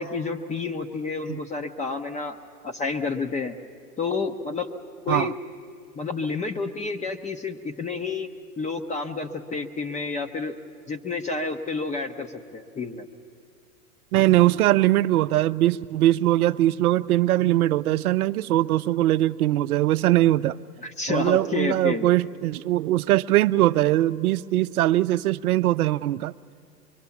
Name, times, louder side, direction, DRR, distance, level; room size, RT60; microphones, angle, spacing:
voice 1, 0.0-2.4 2.6-3.5 4.0-4.7 5.0-5.3 6.0-8.3 8.6-10.5 10.9-13.1 20.8-22.1, left 4 dB, 15° left, 6 dB, 0.8 m, -29 dB
voice 2, 14.1-20.6 21.1-26.3, right 15 dB, 70° right, 15 dB, 0.6 m, -21 dB
24.0 x 23.0 x 7.1 m, 2.3 s
hypercardioid pair, 110°, 46 cm